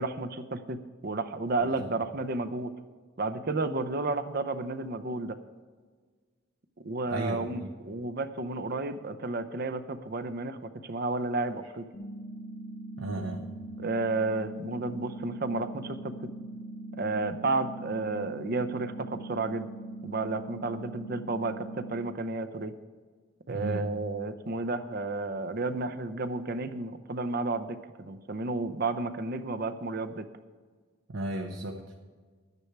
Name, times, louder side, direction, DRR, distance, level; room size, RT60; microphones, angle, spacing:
voice 1, 0.0-2.7 3.2-5.4 6.8-11.9 13.8-16.2 17.0-19.7 20.0-22.7 23.5-30.3, right 3 dB, 50° right, 9 dB, 0.7 m, -32 dB
voice 2, 7.1-7.7 13.0-13.5 23.5-23.9 31.1-31.8, right 1 dB, 75° right, 2 dB, 0.9 m, -34 dB
sound 1, 11.9-21.9, right 2 dB, 65° left, 1.3 m, -41 dB
11.5 x 9.7 x 4.6 m, 1.5 s
head